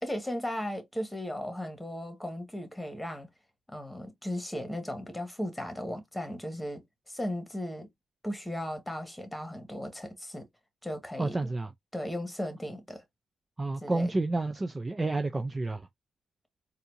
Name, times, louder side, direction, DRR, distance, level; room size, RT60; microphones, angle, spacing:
voice 1, 0.0-3.3 3.7-7.9 8.2-10.5 10.8-11.5 11.9-13.0 13.8-14.1, left 1 dB, 5° left, 1.7 m, -36 dB
voice 2, 11.2-11.7 13.6-15.9, right 2 dB, 20° right, 0.5 m, -30 dB
4.3 x 2.6 x 2.7 m
cardioid pair, 90°, 0 cm